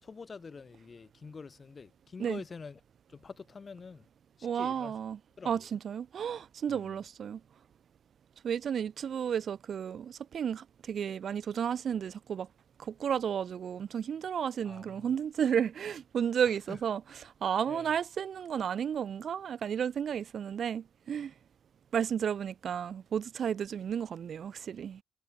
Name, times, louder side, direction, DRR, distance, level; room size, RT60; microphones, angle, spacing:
voice 1, 0.0-2.8 3.1-4.1 4.4-5.0 5.4-5.7 6.7-7.0 14.6-15.2 16.5-16.8 17.7-17.9, left 5 dB, 35° left, 3.7 m, -46 dB
voice 2, 4.4-5.2 5.5-7.4 8.4-12.5 12.8-17.0 17.4-21.3 21.9-25.0, right 8 dB, 55° right, 0.4 m, -32 dB
cardioid pair, 90°, 0 cm